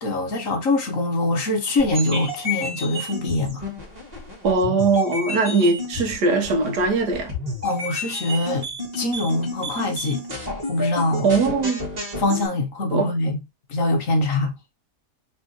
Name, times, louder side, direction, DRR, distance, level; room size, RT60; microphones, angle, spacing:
voice 1, 0.0-3.7 7.6-8.7 8.9-10.2 10.7-11.3 12.2-13.4 13.7-14.5, left 2 dB, 55° left, 1.4 m, -23 dB
sound 1, 1.8-12.5, left 2 dB, 25° right, 1.6 m, -31 dB
voice 2, 4.4-7.3 11.2-11.8 12.9-13.1, right 3 dB, 75° right, 1.7 m, -20 dB
5.0 x 3.4 x 2.9 m
omnidirectional pair, 1.8 m